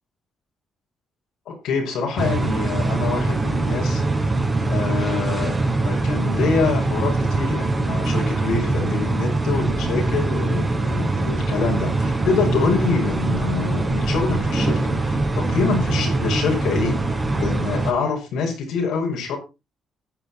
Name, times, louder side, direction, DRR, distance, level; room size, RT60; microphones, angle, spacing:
voice 1, 1.5-4.0 4.7-5.6 5.8-19.4, left 5 dB, 85° left, 1 dB, 5.9 m, -26 dB
sound 1, 2.2-17.9, right 2 dB, 20° right, 4.8 m, -22 dB
15.0 x 9.8 x 4.3 m, 0.29 s
cardioid pair, 90°, 0 cm